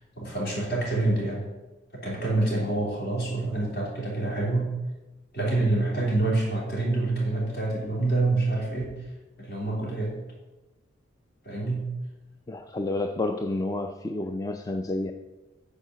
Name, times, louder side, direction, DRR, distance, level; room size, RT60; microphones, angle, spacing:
voice 1, 0.2-1.5 1.9-4.7 5.3-8.9 9.4-10.2 11.4-11.9, right 2 dB, 55° left, -3 dB, 3.4 m, -27 dB
voice 2, 12.5-15.1, left 2 dB, 20° left, 6 dB, 0.4 m, -30 dB
8.5 x 5.0 x 7.4 m, 1.1 s
head